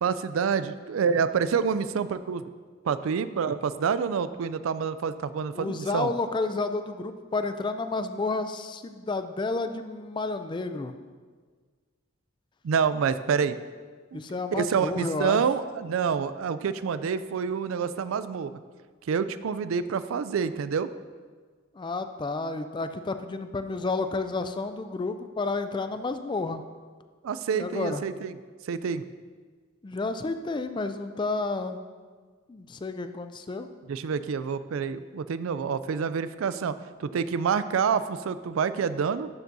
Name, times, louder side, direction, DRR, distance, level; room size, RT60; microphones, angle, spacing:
voice 1, 0.0-2.5 2.8-6.1 12.6-13.6 14.1-14.2 14.5-18.5 19.1-20.9 27.2-28.3 28.6-29.0 33.9-36.7 37.0-39.3, right 6 dB, 75° right, 14 dB, 0.4 m, -27 dB
voice 2, 5.6-10.9 14.1-15.4 21.7-26.6 27.5-28.0 29.8-31.8 32.5-33.7, left 3 dB, 20° left, 9 dB, 0.3 m, -31 dB
12.0 x 7.0 x 2.7 m, 1.5 s
head